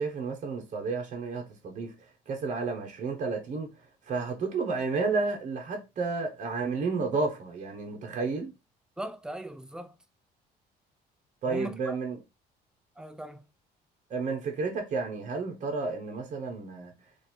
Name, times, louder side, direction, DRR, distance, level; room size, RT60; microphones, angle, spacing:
voice 1, 0.0-1.9 2.3-3.7 4.0-8.5 11.4-12.2 14.1-16.9, right 4 dB, 45° right, 1.1 m, -31 dB
voice 2, 9.0-10.0 11.5-12.0 13.0-13.4, right 1 dB, 5° right, 0.4 m, -39 dB
3.2 x 2.7 x 4.3 m
cardioid pair, 110°, 17 cm